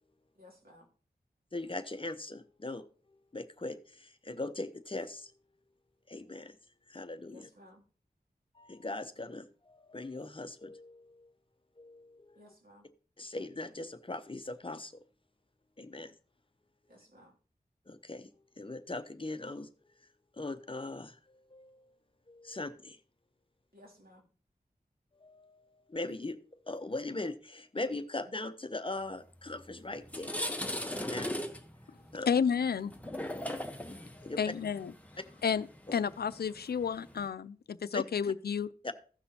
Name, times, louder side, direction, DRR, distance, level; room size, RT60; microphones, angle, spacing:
voice 1, 0.4-0.9 7.3-7.9 12.3-12.9 16.9-17.3 23.7-24.2, left 1 dB, 70° right, 2.5 m, -57 dB
voice 2, 1.5-2.8 3.3-5.3 6.1-6.6 6.9-7.5 8.5-11.3 11.8-12.5 13.2-14.9 15.8-16.1 17.9-18.3 18.6-19.7 20.3-21.2 21.5-21.8 22.3-23.0 25.2-26.4 26.7-30.5 31.0-31.4 32.1-32.3 34.2-34.4 35.9-36.0 37.9-38.0 38.8-38.9, left 2 dB, 35° left, 0.7 m, -40 dB
sound 1, 29.5-29.6 30.0-37.3, left 1 dB, 10° left, 1.0 m, -39 dB
voice 3, 32.3-32.9 34.4-34.9 35.4-35.7 35.9-38.7, left 7 dB, 90° left, 0.4 m, -31 dB
15.5 x 6.1 x 2.8 m
wide cardioid pair, 70°, 16 cm